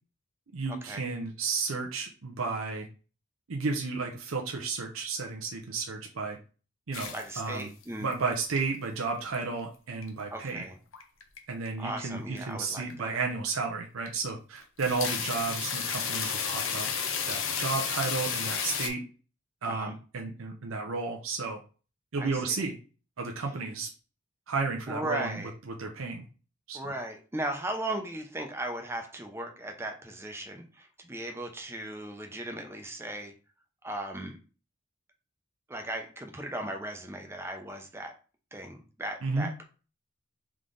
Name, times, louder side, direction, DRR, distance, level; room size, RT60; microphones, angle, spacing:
voice 1, 0.5-2.9 3.5-6.4 6.9-7.7 8.0-10.7 11.5-16.9 17.3-19.0 19.6-21.6 22.1-22.8 23.2-23.9 24.5-26.2 26.7-26.9 39.2-39.5, right 4 dB, 85° right, 1 dB, 0.7 m, -33 dB
sound 1, 6.9-7.8 8.1-8.6 9.0-9.6 10.0-10.1 10.9-11.4 11.7-11.9 12.4-12.5 12.9-13.0 13.5-13.6 14.1-14.3 14.6-18.9, left 6 dB, 80° left, 0.7 m, -32 dB
voice 2, 7.0-8.1 10.3-10.8 11.8-13.2 19.6-19.9 22.2-22.6 24.9-25.5 26.7-33.3 33.8-34.4 35.7-38.1 38.5-39.6, right 1 dB, 10° right, 4 dB, 0.6 m, -37 dB
3.6 x 3.2 x 3.8 m, 0.36 s
head